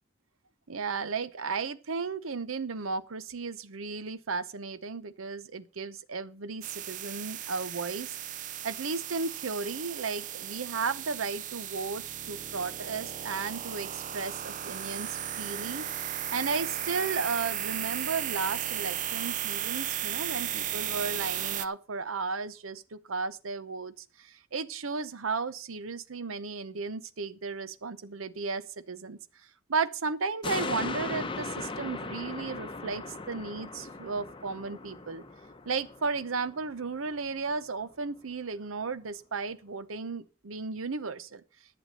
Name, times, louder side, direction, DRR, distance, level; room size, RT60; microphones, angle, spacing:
voice 1, 0.7-29.2 29.7-35.2 35.6-41.4, right 4 dB, 90° right, 0.8 m, -34 dB
sound 1, 6.6-21.7, right 11 dB, 40° right, 0.5 m, -35 dB
sound 2, 30.4-37.1 37.5-37.6, left 3 dB, 25° left, 0.8 m, -38 dB
11.5 x 7.1 x 6.4 m
head